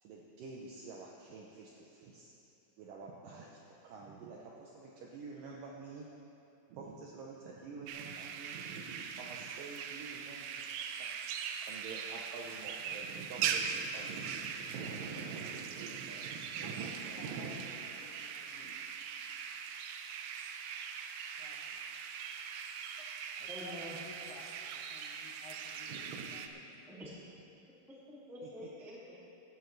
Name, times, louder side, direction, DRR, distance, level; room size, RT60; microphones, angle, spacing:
voice 1, 0.0-2.3 2.8-6.1 6.7-10.8 11.6-17.7 25.9-26.3 28.4-28.5, right 4 dB, 70° right, -2 dB, 2.3 m, -47 dB
sound 1, 7.9-26.5, right 7 dB, 85° right, 1.9 m, -41 dB
voice 2, 17.3-18.8 19.1-19.3 21.4-21.8 23.4-26.8, left 4 dB, 70° left, -3 dB, 2.0 m, -55 dB
voice 3, 23.5-24.0 26.9-27.1 28.1-29.3, equal, ahead, -6 dB, 1.1 m, -47 dB
18.5 x 12.5 x 3.3 m, 2.8 s
omnidirectional pair, 4.4 m